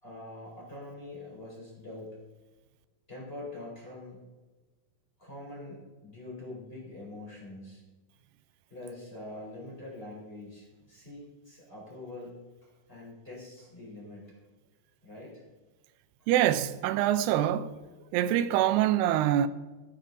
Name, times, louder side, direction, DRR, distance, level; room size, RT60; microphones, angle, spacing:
voice 1, 0.0-2.2 3.1-4.2 5.2-7.8 8.7-14.3 15.0-15.4 16.2-16.3, left 2 dB, 15° left, 4.2 m, -44 dB
voice 2, 16.3-17.8 18.1-19.5, right 12 dB, 90° right, 2.7 m, -25 dB
14.0 x 11.5 x 4.1 m
omnidirectional pair, 4.6 m